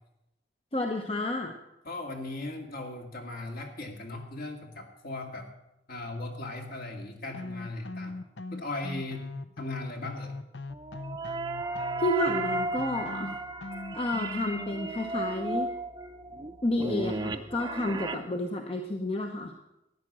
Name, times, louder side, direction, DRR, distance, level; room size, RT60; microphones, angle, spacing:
voice 1, 0.7-1.6 12.0-13.3 13.9-15.7 16.6-19.5, left 1 dB, 35° left, 3 dB, 0.9 m, -30 dB
voice 2, 1.8-5.5 5.9-8.2 8.5-9.3 9.6-10.3, left 2 dB, 55° left, 2 dB, 2.2 m, -38 dB
sound 1, 7.3-14.7, left 3 dB, 75° left, 0.6 m, -40 dB
sound 2, 10.7-18.2, right 3 dB, 25° right, 0.7 m, -34 dB
13.5 x 9.9 x 6.2 m, 0.90 s
head